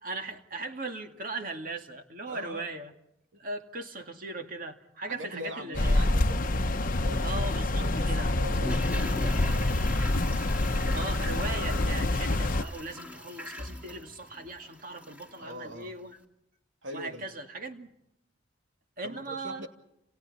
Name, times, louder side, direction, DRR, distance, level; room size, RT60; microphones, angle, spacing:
voice 1, 0.0-2.9 3.4-6.0 7.2-8.3 10.9-16.2 16.9-17.9 19.0-19.7, right 2 dB, 45° right, 4 dB, 2.3 m, -38 dB
voice 2, 2.3-2.7 5.1-6.4 6.9-7.4 7.7-10.2 15.4-15.9 16.8-17.2 19.0-19.7, equal, 90° right, 4 dB, 2.8 m, -42 dB
sound 1, 5.7-12.6, left 2 dB, 45° left, 0.9 m, -27 dB
Toilet flush, 8.4-15.5 15.7-15.8, left 1 dB, 10° right, 2.7 m, -42 dB
30.0 x 28.5 x 4.3 m, 0.82 s
head